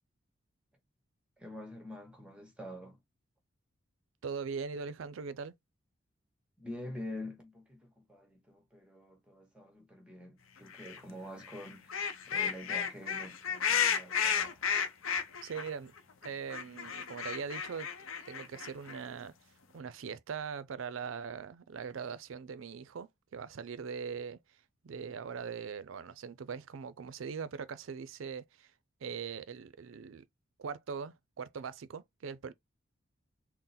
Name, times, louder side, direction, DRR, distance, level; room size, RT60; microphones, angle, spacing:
voice 1, 1.4-3.0 6.6-14.6, left 1 dB, 5° right, 1.0 m, -46 dB
voice 2, 4.2-5.5 15.4-15.9 16.2-17.9 18.3-19.3 19.7-24.6 24.8-28.7 29.0-30.3 30.6-32.5, right 6 dB, 75° right, 0.4 m, -41 dB
sound 1, 10.7-11.0 11.4-15.7 16.0-19.0, left 7 dB, 80° left, 0.6 m, -33 dB
3.8 x 2.1 x 4.1 m
head